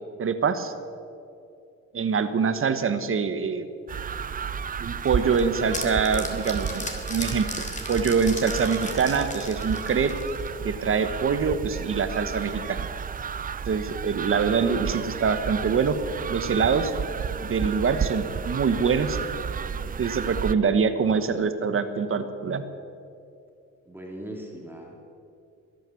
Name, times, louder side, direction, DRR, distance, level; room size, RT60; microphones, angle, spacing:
voice 1, 0.2-0.7 1.9-3.7 4.8-10.1 10.6-12.8 13.7-16.0 16.3-16.9 17.4-19.2 20.0-22.7, right 5 dB, 45° right, 10 dB, 1.2 m, -24 dB
sound 1, 3.9-20.5, right 7 dB, 30° right, 0.5 m, -32 dB
sound 2, 5.0-10.6, left 2 dB, 25° left, 2.6 m, -37 dB
voice 2, 23.9-25.0, right 1 dB, 5° right, -1 dB, 2.4 m, -39 dB
22.0 x 9.2 x 7.1 m, 2.6 s
cardioid pair, 90°, 30 cm